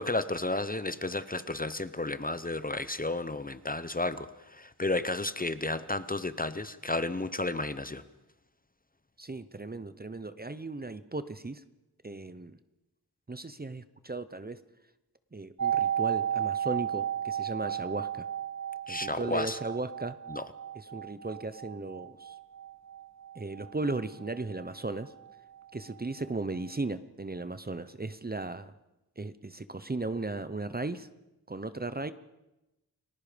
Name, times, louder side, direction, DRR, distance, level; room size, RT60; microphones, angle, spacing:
voice 1, 0.0-8.0 18.9-19.6 20.3-20.4, left 2 dB, 20° left, 13 dB, 0.9 m, -32 dB
voice 2, 9.2-11.6 12.0-12.6 13.3-14.6 15.3-18.3 18.9-20.2 20.7-22.3 23.3-25.1 25.7-28.7 29.2-31.1 31.5-32.1, right 2 dB, 25° right, 13 dB, 0.8 m, -36 dB
sound 1, 15.6-25.3 25.6-25.7, right 10 dB, 45° right, 1.5 m, -34 dB
29.5 x 20.0 x 5.1 m, 0.96 s
wide cardioid pair, 100°, 38 cm